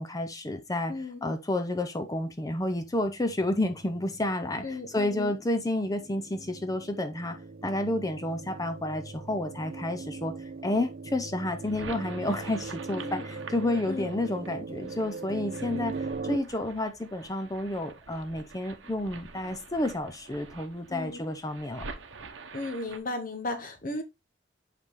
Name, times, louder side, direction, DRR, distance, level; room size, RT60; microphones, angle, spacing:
voice 1, 0.0-21.9, left 1 dB, 20° left, 0.6 m, -30 dB
voice 2, 0.9-1.3 4.6-5.3 12.9-13.2 13.9-14.1 20.9-21.2 22.5-24.0, left 2 dB, 45° left, 0.9 m, -35 dB
sound 1, 3.3-16.4, right 4 dB, 50° right, 0.6 m, -40 dB
sound 2, 11.5-23.0, right 4 dB, 75° right, 0.9 m, -46 dB
6.5 x 5.5 x 3.1 m
head